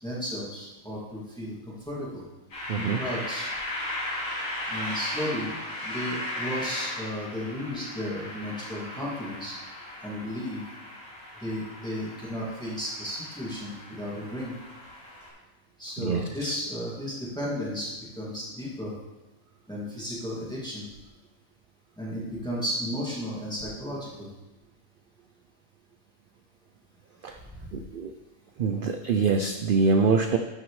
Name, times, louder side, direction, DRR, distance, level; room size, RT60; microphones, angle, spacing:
voice 1, 0.0-2.2 2.7-3.5 4.7-9.5 10.0-10.6 11.4-14.5 15.8-18.9 19.7-20.9 22.0-24.3 27.5-27.7, equal, 5° left, -7 dB, 2.2 m, -34 dB
sound 1, 2.5-15.3, left 1 dB, 85° left, 3.2 m, -37 dB
voice 2, 2.7-3.0 16.0-16.5 27.2-27.4 27.7-28.1 28.6-30.4, right 4 dB, 80° right, 7 dB, 0.4 m, -25 dB
12.5 x 6.1 x 3.2 m, 1.1 s
omnidirectional pair, 1.4 m